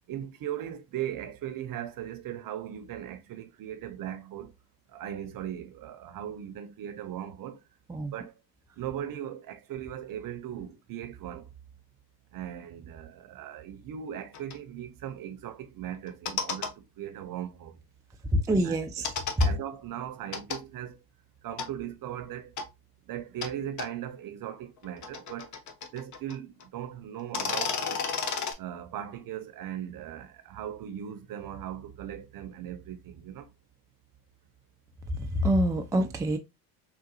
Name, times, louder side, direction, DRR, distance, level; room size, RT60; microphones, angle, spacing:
voice 1, 0.1-4.5 4.9-7.6 8.1-8.3 8.7-11.5 12.3-17.8 18.6-18.8 19.4-21.0 21.4-22.6 23.1-25.5 25.9-28.0 28.6-33.5, right 10 dB, 45° right, 0.8 m, -38 dB
sound 1, 14.3-14.5 16.1-16.7 19.0-19.5 20.3-20.6 21.6-21.7 22.6-22.7 23.4-23.5 23.8-23.9 24.8-26.4 26.6-26.7 27.2-28.5, left 5 dB, 40° left, 0.7 m, -32 dB
voice 2, 18.5-19.1 35.2-36.4, right 1 dB, 10° right, 0.4 m, -26 dB
3.8 x 2.5 x 2.5 m
hypercardioid pair, 70°, 46 cm